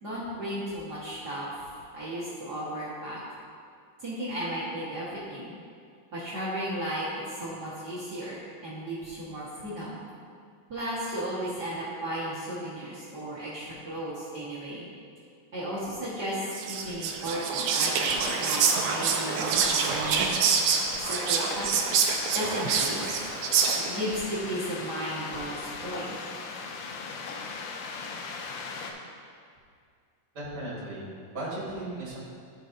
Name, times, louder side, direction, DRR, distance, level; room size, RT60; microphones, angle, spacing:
voice 1, 0.0-1.5 1.9-3.2 4.0-5.5 6.1-10.0 10.7-14.8 15.5-20.4 21.0-23.2 23.9-26.1, right 1 dB, 55° right, -9 dB, 1.1 m, -34 dB
Whispering, 16.5-24.1, right 6 dB, 90° right, 1.4 m, -26 dB
sound 1, 18.0-28.9, left 4 dB, 90° left, 2.3 m, -39 dB
voice 2, 30.3-32.2, right 1 dB, 40° right, -6 dB, 1.9 m, -36 dB
13.0 x 5.4 x 2.6 m, 2.2 s
omnidirectional pair, 3.7 m